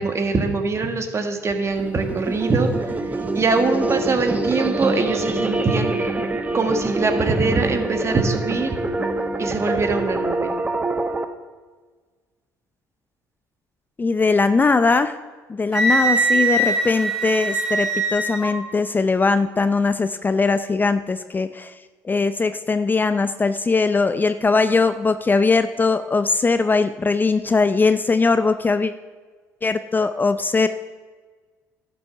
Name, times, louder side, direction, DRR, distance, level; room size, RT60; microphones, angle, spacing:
voice 1, 0.0-2.7 3.3-6.1 6.5-8.8 9.4-10.5, right 3 dB, 35° right, 5 dB, 1.5 m, -22 dB
sound 1, 1.7-11.2, right 2 dB, 20° right, 1.0 m, -25 dB
voice 2, 14.0-15.1 15.5-21.7 22.0-28.9 29.6-30.7, left 4 dB, 25° left, 11 dB, 0.5 m, -20 dB
Wind instrument woodwind instrument, 15.7-18.5, right 2 dB, 5° right, 2.9 m, -21 dB
11.0 x 6.8 x 5.7 m, 1.4 s
hypercardioid pair, 60°, 8 cm